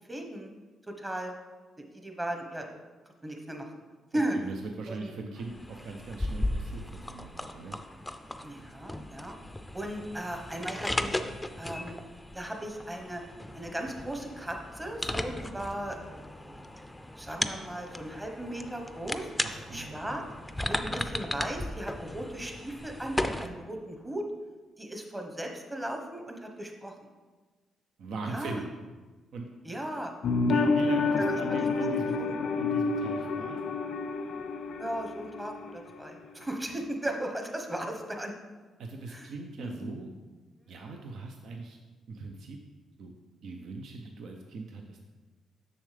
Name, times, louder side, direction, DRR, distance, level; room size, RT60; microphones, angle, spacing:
voice 1, 0.1-0.5 0.9-1.4 1.9-2.7 3.2-3.7 4.1-4.4 4.9-5.1 8.4-9.3 9.7-11.2 11.6-12.0 12.3-13.2 13.5-16.6 17.1-19.5 19.7-20.2 20.6-24.3 24.8-26.9 28.3-28.6 29.6-30.1 31.2-31.9 32.2-32.3 34.8-38.4 39.1-39.3 39.6-39.7, right 1 dB, 15° right, 3 dB, 1.1 m, -36 dB
voice 2, 4.3-7.8 19.4-20.2 28.0-28.7 29.3-29.5 30.5-32.2 32.6-33.6 38.8-40.1 40.7-41.8 42.1-42.6 43.0-43.1 43.4-45.0, right 3 dB, 75° right, 3 dB, 0.6 m, -40 dB
sound 1, 5.4-23.5, left 1 dB, 10° left, 0.5 m, -36 dB
sound 2, 30.2-35.8 36.0-36.1, left 4 dB, 70° left, 0.4 m, -29 dB
7.0 x 6.5 x 3.4 m, 1.3 s
cardioid pair, 80°, 0 cm